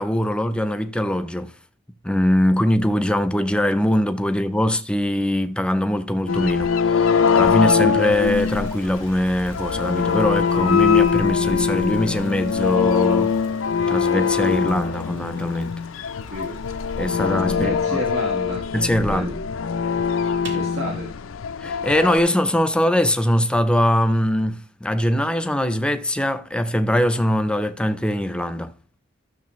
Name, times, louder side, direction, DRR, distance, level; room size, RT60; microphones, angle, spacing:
voice 1, 0.0-1.5 2.0-13.3 13.9-15.7 17.0-18.0 18.7-19.3 21.6-28.7, left 1 dB, 5° left, 0.5 m, -22 dB
sound 1, 6.3-22.2, left 6 dB, 85° left, 0.5 m, -22 dB
Toilet flush, 7.6-18.9 19.1-19.2 19.5-19.6 20.3-20.8, right 3 dB, 65° right, 2.0 m, -47 dB
voice 2, 17.5-18.7 19.0-19.4 20.5-21.1, equal, 80° right, 1.5 m, -30 dB
13.5 x 6.5 x 3.1 m
head